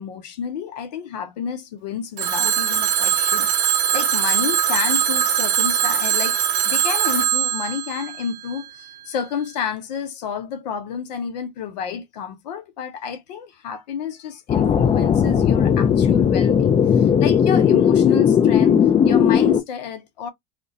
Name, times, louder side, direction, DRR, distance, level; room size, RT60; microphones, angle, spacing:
voice 1, 0.0-18.8 19.0-20.3, left 7 dB, 80° left, 0.5 m, -30 dB
Telephone, 2.2-9.0, right 9 dB, 80° right, 0.6 m, -21 dB
sound 1, 14.5-19.6, left 8 dB, 30° left, 0.5 m, -17 dB
2.4 x 2.1 x 2.5 m
hypercardioid pair, 75°, 21 cm